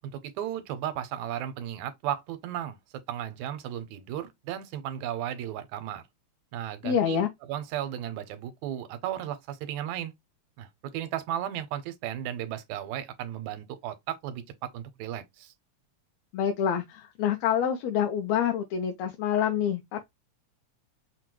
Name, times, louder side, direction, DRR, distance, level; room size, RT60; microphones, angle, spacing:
voice 1, 0.0-2.8 3.1-6.0 6.5-10.1 10.6-10.7 10.9-15.5, right 11 dB, 85° right, 2.0 m, -35 dB
voice 2, 6.8-7.3 16.3-20.0, left 8 dB, 75° left, 1.7 m, -27 dB
5.8 x 2.2 x 3.0 m
omnidirectional pair, 3.3 m